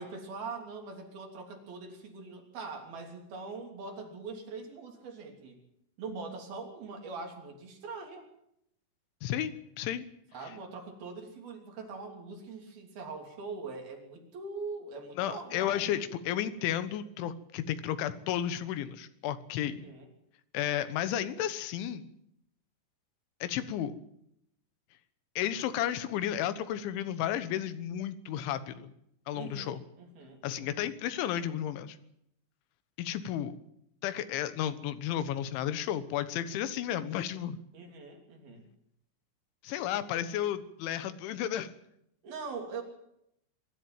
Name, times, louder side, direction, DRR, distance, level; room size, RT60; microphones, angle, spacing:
voice 1, 0.0-5.6 6.0-8.3 10.3-15.9 19.6-20.1 29.3-30.9 37.7-38.6 42.2-42.8, right 4 dB, 50° right, 2 dB, 4.6 m, -42 dB
voice 2, 9.2-10.1 15.2-19.8 20.5-22.0 23.4-24.0 25.4-28.9 29.3-29.8 30.4-32.0 33.0-33.6 34.0-37.6 39.6-41.7, left 11 dB, 75° left, 12 dB, 3.4 m, -33 dB
24.0 x 12.5 x 9.1 m, 0.77 s
omnidirectional pair, 5.8 m